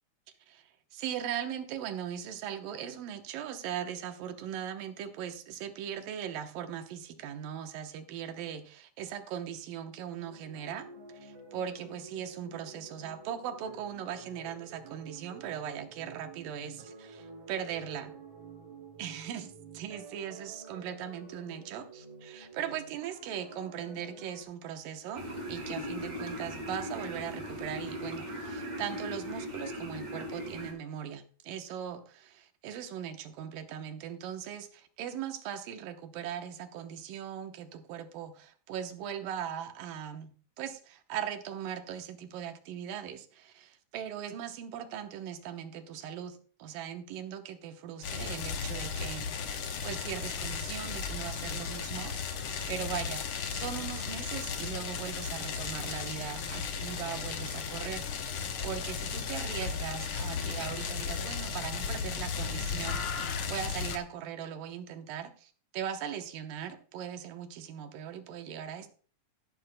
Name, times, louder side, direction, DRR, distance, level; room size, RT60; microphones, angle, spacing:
voice 1, 0.5-10.9 11.1-18.1 19.0-19.5 19.8-49.3 49.8-58.1 58.6-68.9, right 9 dB, 85° right, 7 dB, 2.7 m, -39 dB
sound 1, 10.1-24.4, right 4 dB, 60° right, 3.8 m, -50 dB
sound 2, 25.1-30.7, equal, 25° right, 4.7 m, -38 dB
sound 3, 48.0-64.0, left 6 dB, 75° left, 1.2 m, -35 dB
14.0 x 11.5 x 2.2 m, 0.42 s
omnidirectional pair, 3.8 m